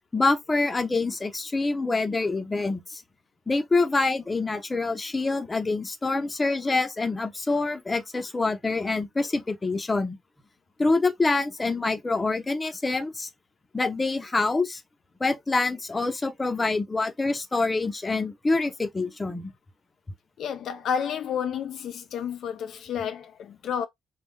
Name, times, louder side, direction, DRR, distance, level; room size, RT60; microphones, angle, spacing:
voice 1, 0.1-3.0 3.5-10.2 10.8-13.3 13.7-14.8 15.2-19.5, left 3 dB, 20° left, 0.6 m, -26 dB
voice 2, 20.4-23.9, left 7 dB, 70° left, 0.3 m, -30 dB
2.2 x 2.0 x 3.5 m
cardioid pair, 90°, 0 cm